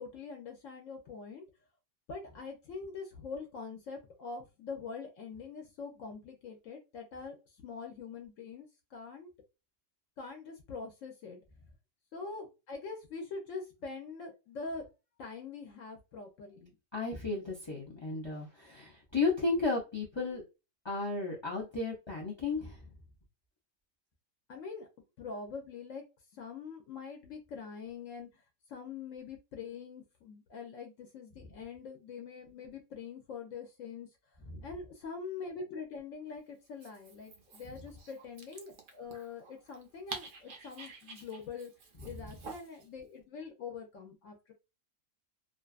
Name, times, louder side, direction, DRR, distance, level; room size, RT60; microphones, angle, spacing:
voice 1, 0.0-1.5 2.1-9.3 10.2-11.4 12.1-14.9 15.2-16.7 24.5-24.9 25.2-26.0 26.3-28.4 28.7-34.1 34.6-41.7 42.0-44.5, left 5 dB, 75° left, 3 dB, 0.9 m, -44 dB
voice 2, 16.9-20.4 20.8-22.8 34.5-34.6, left 3 dB, 35° left, -2 dB, 0.4 m, -34 dB
Dog, 36.6-42.9, right 5 dB, 70° right, 0.5 m, -49 dB
2.5 x 2.3 x 2.3 m, 0.27 s
omnidirectional pair, 1.4 m